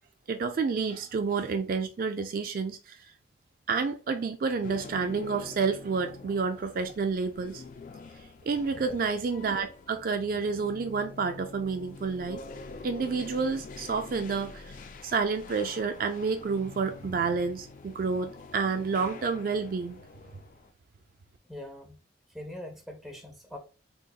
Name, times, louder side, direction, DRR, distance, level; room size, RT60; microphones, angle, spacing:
voice 1, 0.3-3.0 3.7-7.6 8.5-12.4 12.8-14.8 15.0-20.0, right 5 dB, 50° right, 0.3 m, -29 dB
sound 1, 4.6-20.7, left 3 dB, 45° left, 0.3 m, -46 dB
voice 2, 21.4-22.0 22.3-23.6, left 1 dB, ahead, 0.6 m, -42 dB
3.8 x 2.8 x 2.3 m
head